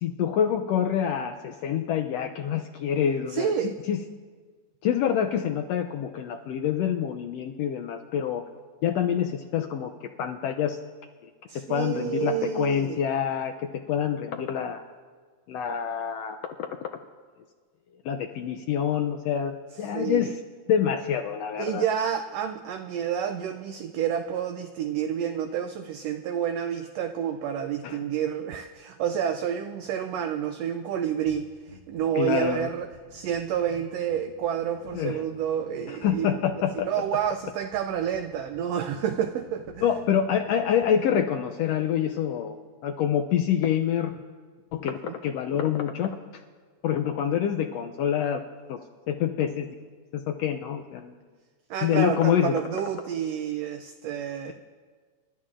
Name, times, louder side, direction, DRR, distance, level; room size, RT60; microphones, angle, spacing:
voice 1, 0.0-4.0 4.8-8.4 8.8-10.8 11.7-13.5 13.9-14.8 15.5-16.4 18.0-19.5 19.8-20.4 20.7-21.8 27.8-28.0 32.1-32.7 34.9-35.2 35.9-36.9 39.8-42.6 42.8-44.2 44.7-46.2 46.8-48.4 48.7-48.8 49.1-49.7 50.1-51.1 51.8-52.6, left 9 dB, 85° left, 5 dB, 1.4 m, -26 dB
voice 2, 3.3-3.7 11.5-13.0 19.9-20.3 21.6-31.4 31.9-36.3 36.8-39.8 45.1-45.2 51.7-54.5, right 9 dB, 85° right, 7 dB, 1.4 m, -29 dB
sound 1, 31.2-40.8, right 1 dB, 35° right, 1.7 m, -51 dB
29.5 x 12.5 x 2.5 m, 1.5 s
omnidirectional pair, 3.5 m